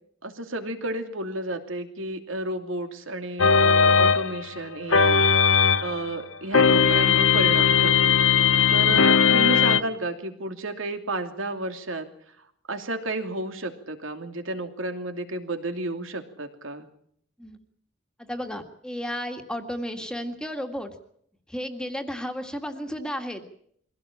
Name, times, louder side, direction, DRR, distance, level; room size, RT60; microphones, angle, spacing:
voice 1, 0.2-5.2 5.8-8.2 8.7-12.1 12.7-16.9, right 2 dB, 75° right, 6 dB, 2.8 m, -32 dB
sound 1, 3.4-6.0 6.5-9.8, left 6 dB, 80° left, 0.9 m, -19 dB
voice 2, 18.3-20.9 21.5-23.4, equal, 5° left, 5 dB, 2.0 m, -33 dB
23.5 x 17.0 x 8.8 m, 0.67 s
head